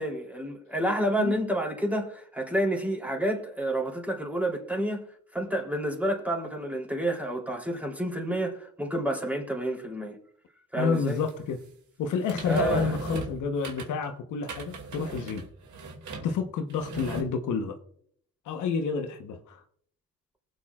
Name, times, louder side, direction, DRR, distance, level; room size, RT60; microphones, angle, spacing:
voice 1, 0.0-5.0 5.3-10.2 10.7-11.2 12.4-12.9, right 1 dB, 5° right, 3.3 m, -29 dB
voice 2, 10.8-11.6 12.0-15.5 16.2-17.8 18.4-19.6, left 5 dB, 80° left, 1.1 m, -29 dB
sound 1, 11.1-11.3 12.3-14.0 14.4-16.4 16.7-17.2, right 2 dB, 70° right, 2.4 m, -36 dB
20.0 x 8.4 x 2.4 m
cardioid pair, 90°, 30 cm